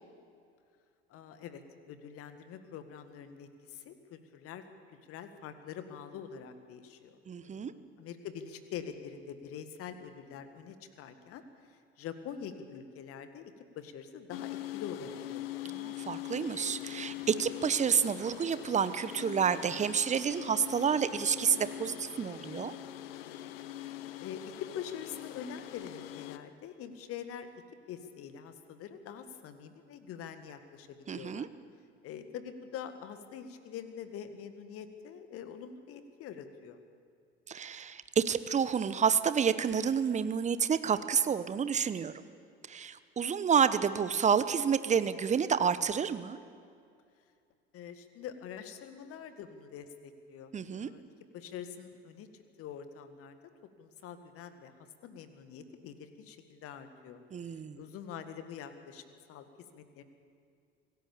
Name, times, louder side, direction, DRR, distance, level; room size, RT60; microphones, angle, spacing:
voice 1, 1.1-15.5 24.2-27.5 27.9-31.5 32.0-36.8 47.7-51.0 51.3-53.4 53.8-54.7 55.0-60.0, left 8 dB, 45° left, 9 dB, 1.9 m, -45 dB
voice 2, 7.3-7.7 15.7-22.7 31.1-31.5 37.5-42.1 42.7-46.4 50.5-50.9 57.3-57.8, right 7 dB, 20° right, 13 dB, 1.0 m, -29 dB
sound 1, 14.3-26.4, left 14 dB, 65° left, 1.0 m, -42 dB
25.5 x 17.0 x 7.2 m, 2.3 s
figure-of-eight pair, 65°, 32 cm